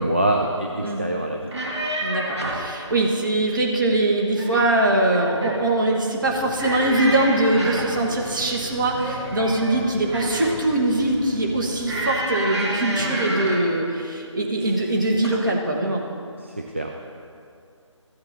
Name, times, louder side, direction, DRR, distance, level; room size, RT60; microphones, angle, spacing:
voice 1, 0.0-1.5 13.0-13.2 16.4-17.0, right 1 dB, 25° right, 1 dB, 0.4 m, -25 dB
sound 1, 1.4-2.7 4.2-4.8 5.1-5.6 6.6-8.0 9.0-10.7 11.8-13.7 14.6-14.9 15.2-15.4, right 1 dB, 60° right, 2.2 m, -29 dB
voice 2, 2.0-16.0, right 2 dB, 40° right, -1 dB, 1.5 m, -22 dB
sound 2, 6.2-12.1, right 1 dB, 5° right, 1.8 m, -39 dB
15.0 x 8.7 x 2.8 m, 2.4 s
figure-of-eight pair, 160°, 16 cm